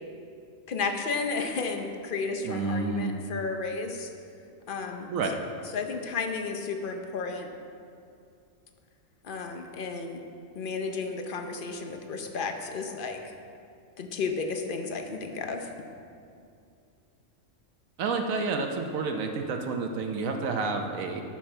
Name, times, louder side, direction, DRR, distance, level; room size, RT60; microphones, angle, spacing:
voice 1, 0.7-4.1 4.7-5.1 5.7-7.5 9.2-10.2 10.5-13.3 14.0-15.7, left 4 dB, 45° left, 5 dB, 0.8 m, -33 dB
voice 2, 2.4-3.1 5.1-5.3 18.0-21.2, right 4 dB, 80° right, 4 dB, 1.1 m, -29 dB
12.0 x 5.9 x 4.4 m, 2.4 s
omnidirectional pair, 1.4 m